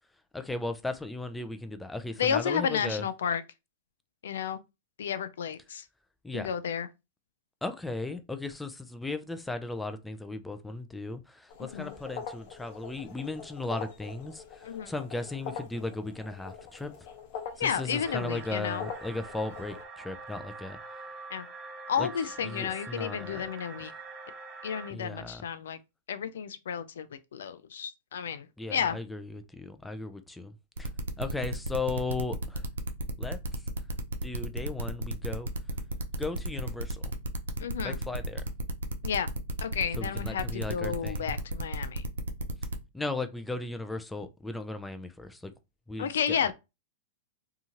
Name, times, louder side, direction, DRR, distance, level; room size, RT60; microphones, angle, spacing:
voice 1, 0.3-3.0 6.2-6.5 7.6-16.9 17.6-20.8 22.0-22.1 22.4-23.5 23.9-24.0 24.9-25.5 28.6-30.9 31.2-32.6 33.2-33.6 34.2-35.5 36.2-37.1 37.8-38.4 40.0-41.4 42.9-45.5 45.9-46.4, left 2 dB, 5° left, 0.4 m, -36 dB
voice 2, 2.2-3.4 4.2-4.6 5.0-5.8 6.3-6.9 11.7-11.9 14.6-14.9 17.6-18.9 21.3-21.5 21.9-23.9 24.6-25.8 26.1-27.1 27.3-29.0 37.6-38.0 39.0-39.3 39.6-42.0 46.0-46.5, left 7 dB, 80° left, 0.3 m, -32 dB
sound 1, 11.5-19.8, left 6 dB, 50° left, 0.7 m, -43 dB
sound 2, 18.0-24.9, right 3 dB, 30° right, 0.7 m, -45 dB
sound 3, 30.8-42.7, right 1 dB, 85° right, 0.4 m, -33 dB
2.7 x 2.3 x 2.9 m
hypercardioid pair, 115°, 0 cm